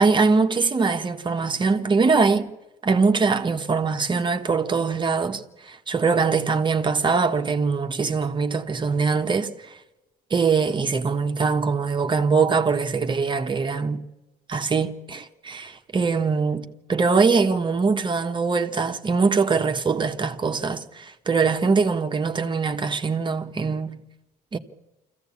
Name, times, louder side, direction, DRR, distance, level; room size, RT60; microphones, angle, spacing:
voice 1, 0.0-2.5 2.8-9.5 10.3-14.0 14.5-24.0 24.5-24.6, right 4 dB, 30° right, 1.3 m, -22 dB
24.5 x 15.5 x 8.5 m
cardioid pair, 110°, 17 cm